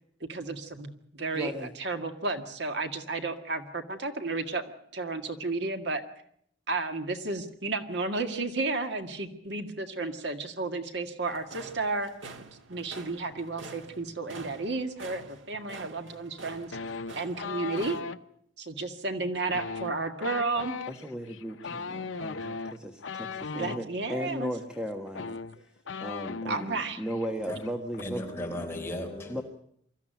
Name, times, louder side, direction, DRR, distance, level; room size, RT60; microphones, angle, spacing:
voice 1, 0.2-6.0 6.7-12.1 12.7-16.8 17.2-18.0 18.6-20.8 23.5-24.5 26.5-27.0, right 3 dB, 60° right, 1.9 m, -32 dB
voice 2, 1.3-1.8 20.9-28.3 29.3-29.4, equal, 5° right, 1.4 m, -37 dB
sound 1, 11.3-18.0, right 3 dB, 85° right, 1.6 m, -47 dB
sound 2, 16.7-18.2 19.4-23.8 24.7-24.8 25.1-26.7 27.0-27.3 27.5-28.0, left 5 dB, 85° left, 0.8 m, -37 dB
voice 3, 28.0-29.4, left 1 dB, 15° left, 3.8 m, -36 dB
24.5 x 14.5 x 9.2 m
head